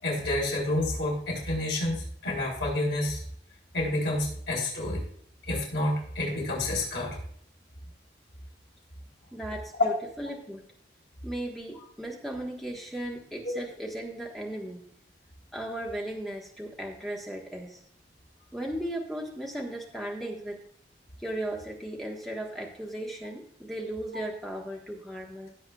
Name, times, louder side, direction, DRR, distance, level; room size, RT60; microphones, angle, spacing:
voice 1, 0.0-3.2 3.7-5.0 5.5-7.2 9.7-9.9 13.4-13.5, left 1 dB, 80° left, -2 dB, 4.2 m, -29 dB
voice 2, 9.3-10.6 11.2-14.8 15.5-17.8 18.5-20.6 21.2-25.5, right 1 dB, ahead, -2 dB, 1.4 m, -36 dB
16.0 x 7.6 x 2.4 m, 0.65 s
head